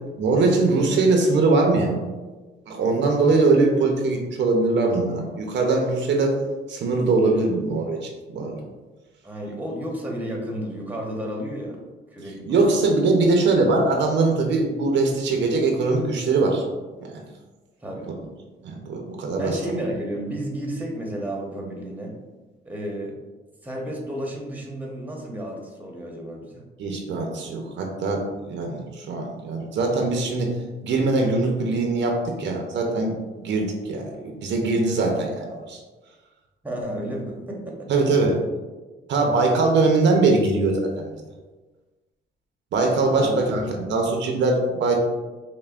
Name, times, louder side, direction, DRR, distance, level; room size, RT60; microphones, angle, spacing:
voice 1, 0.2-2.0 2.7-6.4 6.7-8.6 12.5-16.6 17.0-17.1 18.1-18.2 18.6-19.5 26.8-30.5 30.8-35.8 37.9-38.4 39.1-41.2 42.7-43.6 43.9-45.0, right 3 dB, 65° right, 2 dB, 0.6 m, -22 dB
voice 2, 9.2-11.8 12.1-12.9 17.8-18.1 19.3-22.2 22.6-23.2 23.6-26.6 36.6-37.9 42.9-43.9, right 1 dB, 10° right, -1 dB, 0.9 m, -32 dB
5.5 x 2.1 x 2.4 m, 1.2 s
cardioid pair, 90°, 20 cm